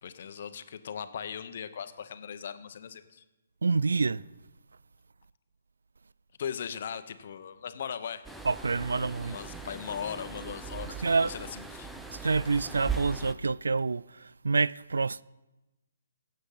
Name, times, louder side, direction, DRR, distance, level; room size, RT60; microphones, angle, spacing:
voice 1, 0.0-3.2 6.4-8.3 8.9-11.9, left 7 dB, 55° left, 1.0 m, -39 dB
voice 2, 3.6-4.2 8.4-9.4 11.0-11.3 12.1-15.2, right 4 dB, 85° right, 0.3 m, -27 dB
sound 1, 8.2-13.3, right 5 dB, ahead, 0.7 m, -39 dB
16.5 x 7.8 x 5.6 m
hypercardioid pair, 145°, 0 cm